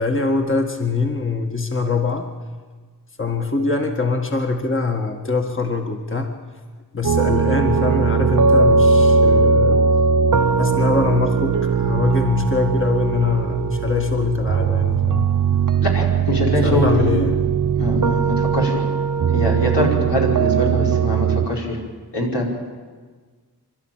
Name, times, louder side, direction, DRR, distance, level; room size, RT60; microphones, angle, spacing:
voice 1, 0.0-2.3 3.2-6.3 6.9-9.8 10.6-15.3 16.6-17.6, left 3 dB, 30° left, 3 dB, 1.7 m, -23 dB
sound 1, 7.0-21.5, right 5 dB, 50° right, 0.9 m, -19 dB
voice 2, 15.8-17.2 17.8-18.8 19.3-21.8 22.1-22.5, left 1 dB, 90° left, -3 dB, 5.2 m, -23 dB
27.5 x 12.5 x 9.0 m, 1.5 s
wide cardioid pair, 65°, 40 cm